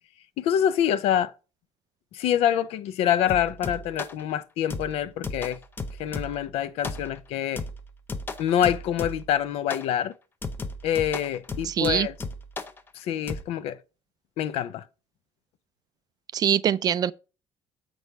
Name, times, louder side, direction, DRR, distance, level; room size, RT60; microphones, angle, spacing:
voice 1, 0.4-1.3 2.1-5.6 6.0-7.6 8.4-10.1 10.8-12.1 12.9-13.8 14.4-14.8, left 10 dB, 75° left, 0.7 m, -26 dB
sound 1, 3.3-4.2 4.7-6.5 6.8-7.3 7.6-9.4 9.7-9.9 10.4-12.8 13.3-13.4, left 3 dB, 20° left, 0.7 m, -35 dB
voice 2, 11.6-12.1 16.3-17.1, right 9 dB, 40° right, 0.4 m, -23 dB
6.8 x 6.3 x 3.6 m
cardioid pair, 145°, 11 cm